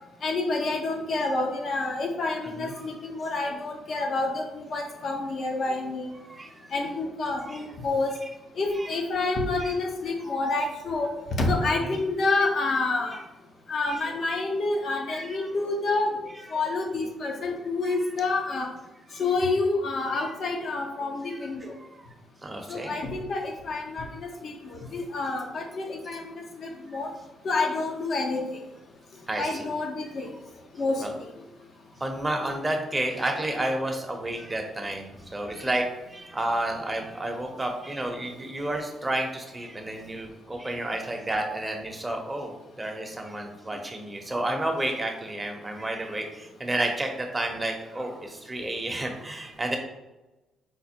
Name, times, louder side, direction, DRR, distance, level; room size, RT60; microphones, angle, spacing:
voice 1, 0.2-6.1 6.7-8.1 8.6-13.2 13.7-16.1 16.5-18.7 19.2-21.7 22.7-27.1 27.4-28.4 29.4-30.3 30.8-31.0, left 3 dB, 55° left, 2 dB, 0.9 m, -28 dB
voice 2, 2.6-2.9 6.2-6.7 7.4-7.6 8.8-8.9 9.6-9.7 11.8-12.0 13.8-14.1 15.1-15.5 17.8-18.0 19.1-19.2 20.2-20.3 21.3-22.0 22.4-23.0 29.3-29.7 31.0-31.1 32.0-49.8, right 1 dB, 20° right, 2 dB, 0.9 m, -31 dB
5.1 x 2.1 x 4.3 m, 1.1 s
cardioid pair, 90°, 0 cm